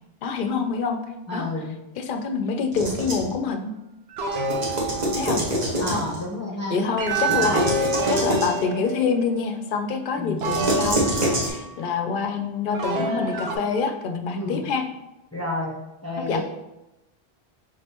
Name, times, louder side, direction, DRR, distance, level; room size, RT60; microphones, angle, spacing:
voice 1, 0.2-1.0 1.3-1.5 2.0-3.8 5.1-5.4 5.7-6.0 6.7-14.8 16.3-16.4, left 5 dB, 60° left, 7 dB, 0.6 m, -26 dB
voice 2, 1.3-1.8 5.8-6.8 7.3-7.6 10.2-10.5 14.3-14.6 15.3-16.4, left 2 dB, 15° left, -4 dB, 0.8 m, -30 dB
sound 1, 2.7-3.3 4.3-6.2 7.1-8.6 10.4-11.5, right 1 dB, 45° right, 1.1 m, -26 dB
sound 2, 4.2-5.6 7.0-9.3 10.4-11.8 12.7-13.6, right 3 dB, 80° right, 0.9 m, -27 dB
5.3 x 3.5 x 2.9 m, 0.93 s
omnidirectional pair, 1.0 m